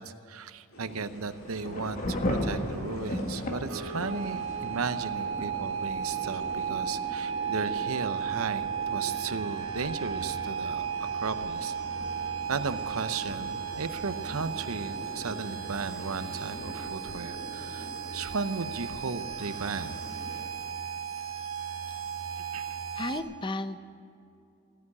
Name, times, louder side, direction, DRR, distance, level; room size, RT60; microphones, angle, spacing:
voice 1, 0.0-10.9 11.1-11.7 12.5-20.0 22.5-22.8, right 4 dB, 90° right, 12 dB, 0.8 m, -35 dB
sound 1, 0.7-20.4, equal, 70° left, 3.7 m, -46 dB
Thunder / Rain, 1.1-15.6, left 1 dB, 40° left, 1.5 m, -39 dB
sound 2, 3.7-23.2, right 7 dB, 70° right, 1.4 m, -35 dB
voice 2, 22.9-23.8, left 2 dB, 20° left, 11 dB, 0.6 m, -33 dB
16.0 x 9.5 x 8.6 m, 2.6 s
head